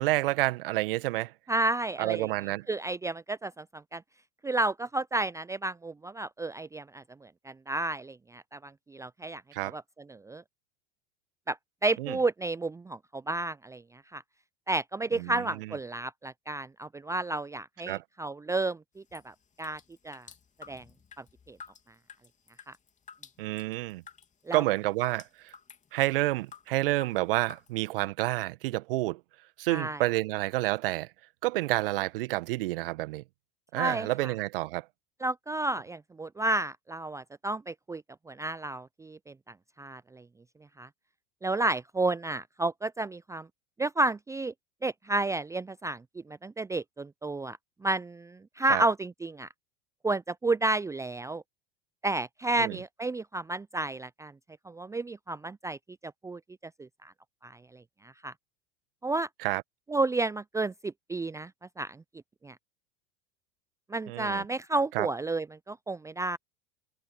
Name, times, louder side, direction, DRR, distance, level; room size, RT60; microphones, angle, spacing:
voice 1, 0.0-1.3 2.0-2.7 9.5-9.8 12.0-12.2 15.1-15.7 17.9-18.0 23.4-24.0 24.5-25.5 25.9-29.2 29.6-31.1 31.4-33.2 33.7-34.8 48.7-48.8 52.6-52.8 59.4-59.6 64.1-64.4 64.9-65.1, right 19 dB, 65° right, 1.7 m, -29 dB
voice 2, 1.5-2.3 2.7-4.0 4.4-9.8 10.1-10.4 11.5-11.6 11.8-13.8 14.1-14.2 14.7-19.8 20.0-20.3 20.7-20.8 21.2-21.6 22.7-22.8 24.5-24.6 29.7-30.0 33.7-34.3 35.2-39.3 39.8-40.2 40.8-40.9 41.4-43.5 43.8-44.5 44.8-46.0 46.3-49.5 50.0-51.4 52.0-54.3 54.6-55.8 56.2-56.4 56.8-57.1 57.4-58.3 59.0-59.3 59.9-61.5 61.8-62.0 62.4-62.6 63.9-66.4, right 2 dB, 10° right, 0.6 m, -31 dB
sound 1, 19.1-26.7 27.0-27.8, left 6 dB, 25° left, 3.3 m, -52 dB
open air
figure-of-eight pair, 80°, 30 cm